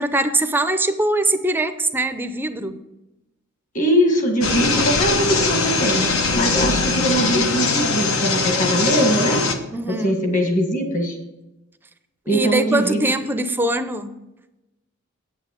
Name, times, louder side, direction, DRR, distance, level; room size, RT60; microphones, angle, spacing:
voice 1, 0.0-2.8 9.7-10.2 12.3-14.1, right 2 dB, 10° right, 9 dB, 0.5 m, -22 dB
voice 2, 3.7-6.0 6.3-9.4 9.9-11.2 12.3-13.1, equal, 40° left, 3 dB, 1.7 m, -21 dB
sound 1, 4.4-9.5, left 3 dB, 80° left, 1.1 m, -21 dB
8.6 x 8.2 x 5.1 m, 0.98 s
head